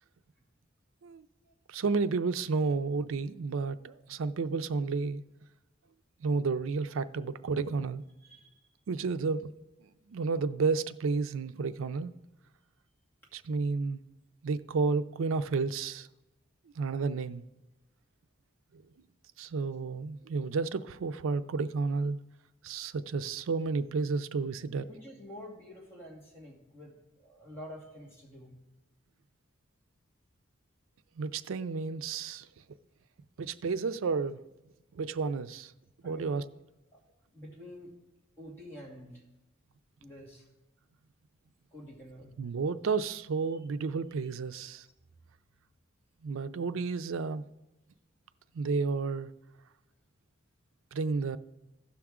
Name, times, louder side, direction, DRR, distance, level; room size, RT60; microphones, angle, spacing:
voice 1, 1.7-5.2 6.2-8.0 8.9-9.5 10.1-12.1 13.3-14.0 14.4-16.1 16.8-17.4 18.7-18.8 19.4-22.2 22.6-24.9 31.2-32.5 33.4-34.4 34.9-35.7 36.0-36.4 42.4-44.9 46.2-47.4 48.5-49.3 50.9-51.4, right 4 dB, 85° right, 0.4 m, -31 dB
voice 2, 8.2-8.5 23.2-23.3 24.9-28.6 36.0-36.5 36.9-37.0 37.3-37.9 38.4-39.2 40.0-40.4 41.7-42.3, equal, 10° left, 2.3 m, -48 dB
15.5 x 5.9 x 3.6 m
head